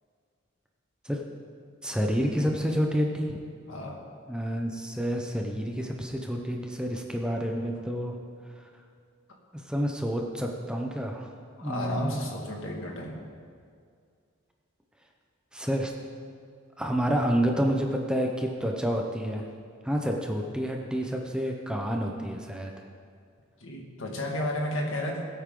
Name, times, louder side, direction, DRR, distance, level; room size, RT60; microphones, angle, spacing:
voice 1, 1.8-3.4 4.3-8.2 9.7-11.3 11.6-12.1 15.5-15.9 16.8-19.5 19.8-22.7, equal, 5° right, 1 dB, 0.9 m, -29 dB
voice 2, 3.7-4.0 11.6-13.2 23.6-25.3, left 1 dB, 65° left, 0 dB, 2.1 m, -32 dB
20.5 x 8.5 x 3.9 m, 2.2 s
head